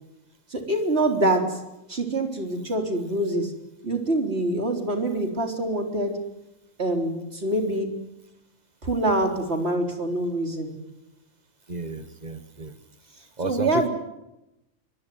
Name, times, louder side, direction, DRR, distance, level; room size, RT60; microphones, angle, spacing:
voice 1, 0.5-1.6 1.9-3.5 3.8-6.2 6.8-7.9 8.8-10.7 13.4-13.9, right 1 dB, 50° right, 3 dB, 4.2 m, -25 dB
voice 2, 11.7-12.7 13.4-13.9, right 2 dB, 30° right, 11 dB, 1.5 m, -32 dB
23.5 x 21.5 x 9.4 m, 0.92 s
omnidirectional pair, 1.4 m